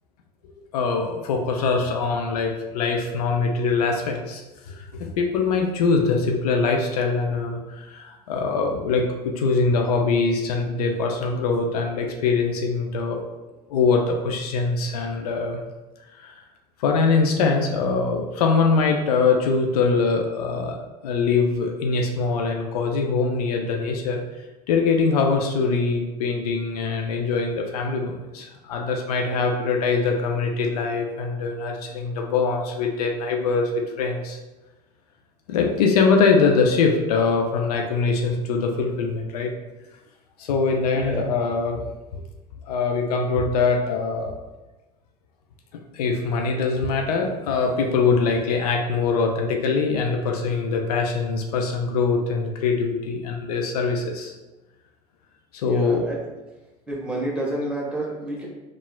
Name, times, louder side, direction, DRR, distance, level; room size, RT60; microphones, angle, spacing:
voice 1, 0.7-4.4 4.7-13.2 13.7-15.6 16.1-16.4 16.8-24.2 24.7-34.4 35.5-39.5 40.4-41.9 42.1-42.2 42.6-44.3 45.9-54.3 55.5-56.0, left 4 dB, 75° left, 2 dB, 0.4 m, -23 dB
voice 2, 55.6-56.2 56.9-58.5, right 1 dB, 5° right, -5 dB, 1.1 m, -29 dB
4.0 x 2.4 x 2.2 m, 1.1 s
hypercardioid pair, 70°, 20 cm